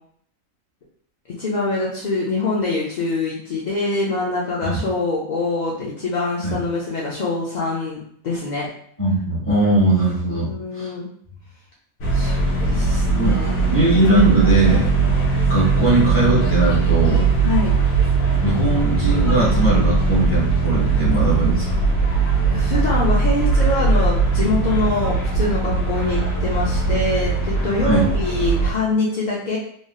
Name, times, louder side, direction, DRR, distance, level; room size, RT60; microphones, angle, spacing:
voice 1, 1.4-8.0 8.2-8.7 10.4-11.1 12.1-13.7 17.4-17.7 22.2-29.6, left 2 dB, 65° left, -6 dB, 0.4 m, -24 dB
voice 2, 9.0-10.9 13.2-13.4 13.7-15.1 15.5-17.3 18.4-21.8 24.4-24.5 27.8-28.1, right 2 dB, 10° left, -8 dB, 1.2 m, -20 dB
sound 1, 12.0-28.7, right 4 dB, 85° left, 1.2 m, -19 dB
3.1 x 2.6 x 2.3 m, 0.63 s
omnidirectional pair, 1.4 m